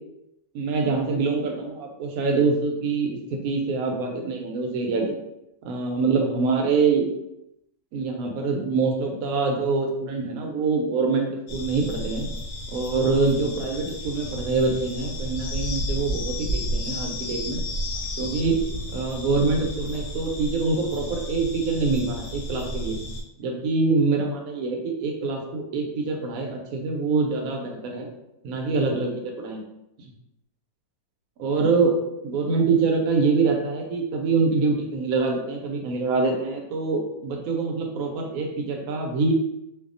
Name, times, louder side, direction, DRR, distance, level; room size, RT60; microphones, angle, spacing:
voice 1, 0.5-3.2 3.4-5.1 5.6-7.0 7.9-12.3 12.7-17.6 18.2-18.6 18.9-23.0 23.4-28.1 28.4-29.6 31.4-32.0 32.2-39.3, right 4 dB, 70° right, 1 dB, 0.9 m, -25 dB
sound 1, 11.5-23.2, equal, 75° left, 1.1 m, -32 dB
2.7 x 2.3 x 2.5 m, 0.87 s
omnidirectional pair, 1.8 m